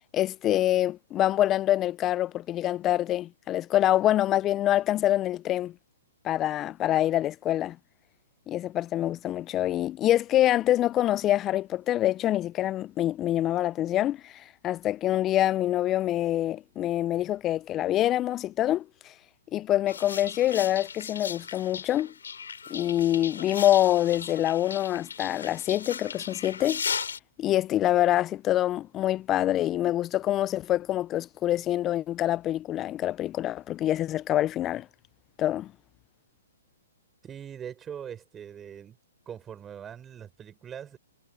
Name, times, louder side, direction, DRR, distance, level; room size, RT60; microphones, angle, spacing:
voice 1, 0.1-5.7 6.2-7.8 8.5-14.3 14.6-18.8 19.5-22.1 22.7-26.8 27.4-34.9 35.4-35.7, left 13 dB, 25° left, 0.4 m, -25 dB
sound 1, 19.9-27.2, left 6 dB, 80° left, 3.0 m, -37 dB
voice 2, 37.2-39.0 39.2-41.0, right 8 dB, 15° right, 6.6 m, -41 dB
hypercardioid pair, 135°, 0 cm